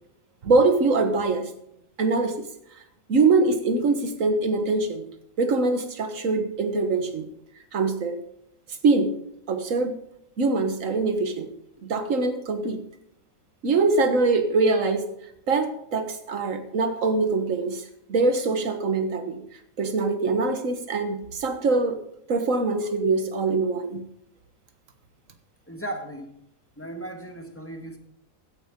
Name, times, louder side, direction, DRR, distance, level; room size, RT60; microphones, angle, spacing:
voice 1, 0.4-1.5 2.0-2.5 3.1-5.0 5.4-7.3 7.7-8.2 8.8-9.2 9.5-10.0 10.4-11.5 11.8-12.8 13.6-15.1 15.5-17.8 18.1-19.4 19.8-22.0 22.3-24.0, right 3 dB, 65° right, 8 dB, 1.7 m, -23 dB
voice 2, 25.7-26.3 26.8-28.0, right 1 dB, 10° left, 4 dB, 1.7 m, -36 dB
16.0 x 11.0 x 3.7 m, 0.77 s
omnidirectional pair, 1.5 m